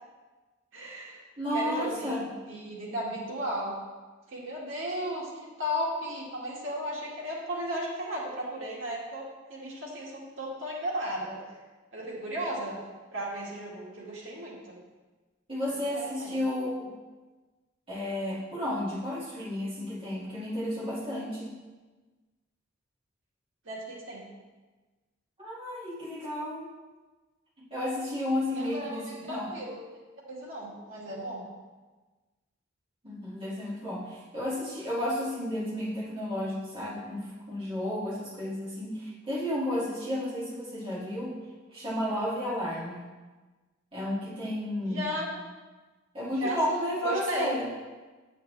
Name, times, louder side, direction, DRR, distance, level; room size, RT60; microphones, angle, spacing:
voice 1, 0.7-1.2 1.5-3.8 4.3-11.4 11.9-12.8 13.1-14.8 15.9-16.3 23.7-24.2 28.6-29.8 30.3-31.4 44.8-45.3 46.3-47.5, equal, 85° right, -4 dB, 2.1 m, -35 dB
voice 2, 1.4-2.2 15.5-16.9 17.9-21.5 25.4-26.7 27.6-29.5 33.0-41.4 41.7-43.0 43.9-45.2 46.1-47.7, left 1 dB, 30° right, -7 dB, 2.2 m, -32 dB
8.5 x 8.3 x 3.3 m, 1.3 s
head